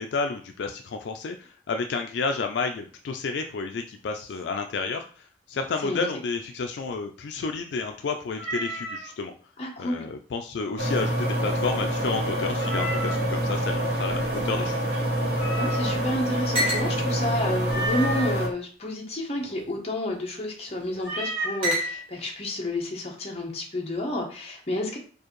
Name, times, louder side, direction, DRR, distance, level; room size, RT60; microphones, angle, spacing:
voice 1, 0.0-9.3 9.8-14.8, left 4 dB, 70° left, 5 dB, 0.3 m, -31 dB
Meow, 8.4-9.1 12.6-13.3 15.4-16.2 17.6-18.4 21.0-21.6, right 1 dB, ahead, 1.6 m, -32 dB
voice 2, 9.6-10.0 15.6-25.0, left 1 dB, 35° left, 0 dB, 0.8 m, -30 dB
sound 1, 10.8-18.5, right 1 dB, 55° right, 0.9 m, -26 dB
sound 2, 14.0-15.7 16.0-16.1 16.5-16.9 17.7-18.5 19.3-19.8 20.7-21.1 21.6-22.3, equal, 30° right, 1.1 m, -32 dB
4.5 x 2.5 x 3.0 m, 0.41 s
head